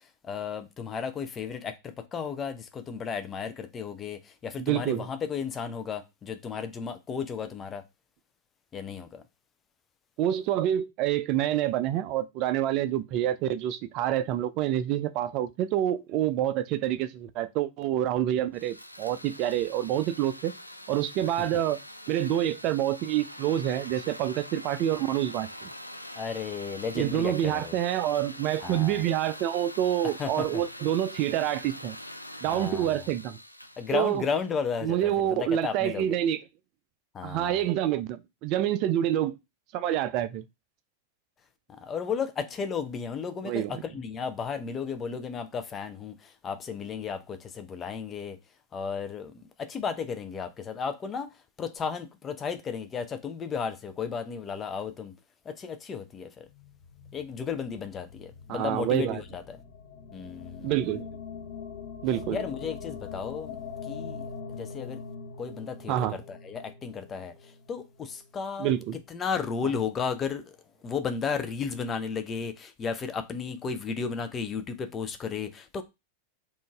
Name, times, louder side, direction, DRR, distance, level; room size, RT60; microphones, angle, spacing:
voice 1, 0.2-7.8 8.7-9.2 26.2-27.8 28.6-29.0 30.2-30.6 32.5-33.0 33.8-36.1 37.1-37.6 41.8-48.4 48.7-51.3 51.6-55.1 55.5-56.5 57.1-59.6 60.1-60.7 62.3-64.2 64.5-65.0 65.4-67.3 67.7-68.7 69.1-70.5 70.8-75.8, left 6 dB, 25° left, 0.5 m, -34 dB
voice 2, 4.6-5.1 10.2-20.5 20.9-21.8 22.1-25.7 26.9-32.0 32.4-33.4 33.9-34.2 34.8-36.4 37.2-39.3 39.7-40.4 43.4-43.8 58.5-59.2 60.6-61.1 62.0-62.4 65.9-66.2 68.6-69.0, right 12 dB, 40° right, 0.3 m, -27 dB
sound 1, 18.5-34.7, equal, 90° left, 0.3 m, -44 dB
sound 2, 56.4-68.7, left 5 dB, 55° left, 0.7 m, -43 dB
3.7 x 2.5 x 2.4 m
figure-of-eight pair, 90°, 0 cm